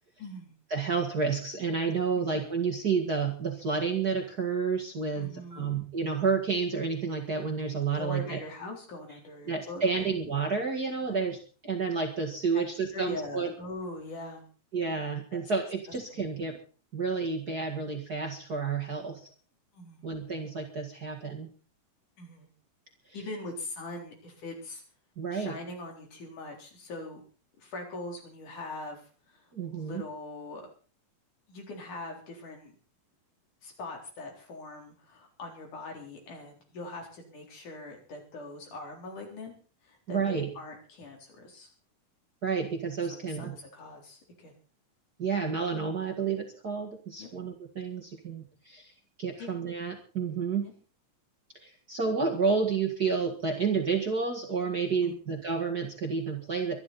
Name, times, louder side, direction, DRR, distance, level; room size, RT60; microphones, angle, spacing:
voice 1, 0.2-0.5 2.2-2.4 5.1-5.8 8.0-10.1 11.1-11.2 12.5-12.6 12.9-14.5 15.3-15.4 16.1-16.2 19.7-20.1 22.2-22.5 23.1-24.8 25.3-27.2 27.6-29.5 29.7-30.7 31.5-32.8 33.6-39.5 39.8-41.7 43.2-44.6 47.2-47.3 49.4-49.5 50.6-50.7 55.0-55.2, left 2 dB, 70° left, 1 dB, 5.4 m, -42 dB
voice 2, 0.7-8.4 9.4-11.4 11.6-13.5 14.7-16.6 16.9-19.3 20.0-21.5 25.2-25.6 29.5-30.0 40.1-40.5 42.4-43.6 45.2-48.9 49.2-50.7 51.6-56.8, right 5 dB, 35° right, 1 dB, 2.0 m, -30 dB
24.0 x 11.0 x 4.2 m, 0.38 s
omnidirectional pair, 3.7 m